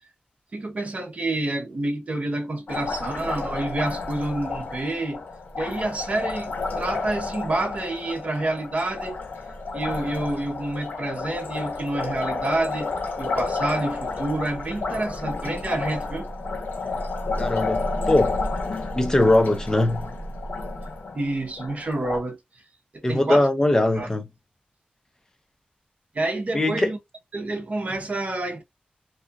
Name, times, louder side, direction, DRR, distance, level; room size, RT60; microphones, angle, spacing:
voice 1, 0.5-5.2 5.5-9.2 9.7-12.9 13.2-16.3 21.1-22.4 22.9-23.5 24.0-24.1 26.1-27.0 27.3-28.6, right 2 dB, 50° right, 0.8 m, -28 dB
Liquid, 2.7-22.2, left 3 dB, 90° left, 0.7 m, -31 dB
voice 2, 17.4-18.4 18.9-20.1 23.0-24.2 26.5-26.9, left 1 dB, 20° left, 0.6 m, -21 dB
2.7 x 2.4 x 2.3 m
wide cardioid pair, 105°, 3 cm